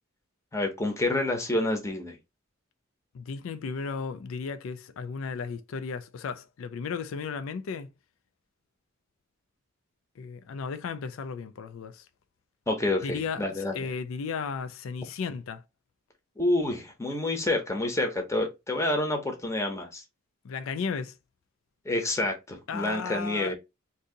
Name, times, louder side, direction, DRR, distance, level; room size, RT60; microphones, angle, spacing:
voice 1, 0.5-2.2 12.7-13.8 16.4-20.0 21.9-23.5, left 2 dB, 15° left, 0.7 m, -28 dB
voice 2, 3.1-7.9 10.2-12.1 13.0-15.6 20.4-21.1 22.7-23.5, left 5 dB, 80° left, 0.4 m, -35 dB
2.7 x 2.6 x 3.7 m
head